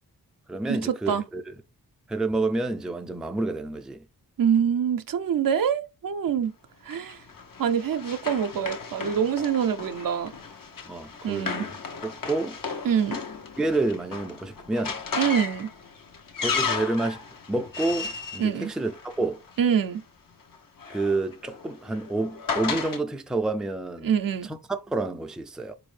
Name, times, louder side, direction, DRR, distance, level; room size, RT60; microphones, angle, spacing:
voice 1, 0.5-1.6 2.1-4.0 10.8-11.7 12.0-12.6 13.6-15.0 16.4-17.2 17.5-19.4 20.9-24.1 24.4-25.7, right 2 dB, ahead, 0.4 m, -29 dB
voice 2, 4.4-6.5 6.9-7.2 7.6-10.3 11.2-11.7 12.8-13.2 15.1-15.7 18.4-18.7 19.6-20.0 24.0-24.5, right 8 dB, 65° right, 0.6 m, -25 dB
Run, 6.9-19.5 20.5-23.0, left 5 dB, 60° left, 0.9 m, -35 dB
4.0 x 2.6 x 3.2 m
cardioid pair, 50°, 37 cm